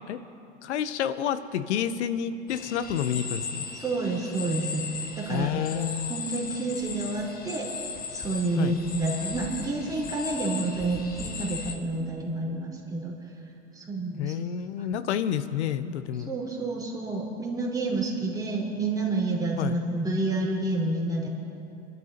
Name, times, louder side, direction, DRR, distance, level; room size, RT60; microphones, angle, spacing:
voice 1, 0.6-3.7 5.3-6.1 8.6-8.8 14.2-16.3 19.6-19.8, left 9 dB, 75° left, 13 dB, 0.9 m, -29 dB
sound 1, 2.5-11.7, left 5 dB, 25° left, 1.3 m, -37 dB
voice 2, 3.7-4.8 5.2-7.7 8.1-13.1 13.7-14.3 16.3-21.3, right 2 dB, 10° right, -4 dB, 4.2 m, -29 dB
29.5 x 12.0 x 2.9 m, 2.6 s
hypercardioid pair, 100°, 34 cm